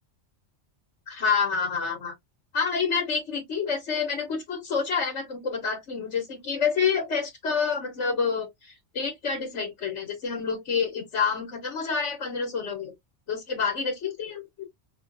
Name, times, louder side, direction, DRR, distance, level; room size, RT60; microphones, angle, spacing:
voice 1, 1.1-2.1 2.5-12.9 13.3-14.5, left 5 dB, 80° left, 1.5 m, -28 dB
5.4 x 2.3 x 2.6 m
omnidirectional pair, 1.2 m